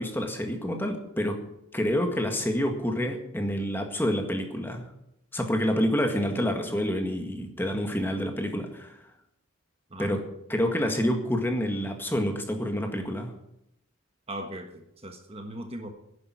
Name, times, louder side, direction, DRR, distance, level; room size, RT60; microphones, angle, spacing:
voice 1, 0.0-1.4 1.7-4.8 5.3-9.0 10.0-10.2 10.5-13.3, equal, 10° left, 4 dB, 1.8 m, -28 dB
voice 2, 14.3-15.9, right 1 dB, 25° right, 5 dB, 1.4 m, -39 dB
11.0 x 10.5 x 9.7 m, 0.80 s
head